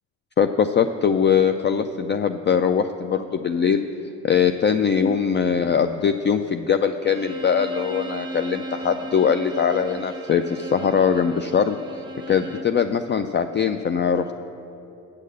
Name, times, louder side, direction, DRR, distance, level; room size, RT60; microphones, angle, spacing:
voice 1, 0.4-3.8 4.2-11.8 12.3-14.4, left 7 dB, 30° left, 8 dB, 0.4 m, -21 dB
Bowed string instrument, 7.0-12.8, right 1 dB, 10° right, 0.8 m, -36 dB
8.5 x 6.4 x 7.7 m, 2.8 s
supercardioid pair, 65°, 38 cm